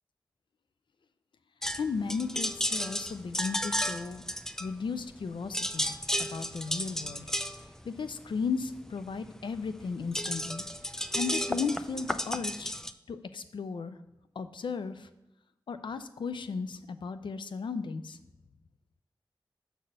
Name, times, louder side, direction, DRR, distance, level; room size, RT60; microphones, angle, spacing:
sound 1, 1.6-5.2 5.5-12.9, equal, 5° left, 0.4 m, -33 dB
voice 1, 1.8-4.3 4.6-5.9 6.2-7.3 7.8-10.6 11.1-12.7 13.1-14.0 14.4-15.1 15.7-18.2, left 5 dB, 85° left, 11 dB, 0.4 m, -35 dB
6.5 x 4.1 x 6.4 m, 0.91 s
cardioid pair, 45°, 8 cm